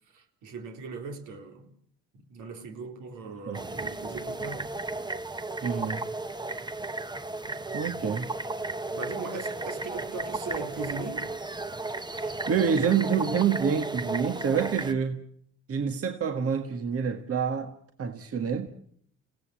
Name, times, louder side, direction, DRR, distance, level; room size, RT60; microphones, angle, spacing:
voice 1, 0.1-1.7 2.1-4.6 7.4-7.5 8.9-11.3, right 4 dB, 80° right, 3.9 m, -39 dB
sound 1, 3.5-14.9, right 2 dB, 15° right, 1.0 m, -34 dB
voice 2, 5.6-6.1 7.7-8.3 12.1-15.3 15.7-17.7 18.0-18.7, right 7 dB, 50° right, 1.8 m, -27 dB
30.0 x 17.0 x 7.7 m
cardioid pair, 90°, 30 cm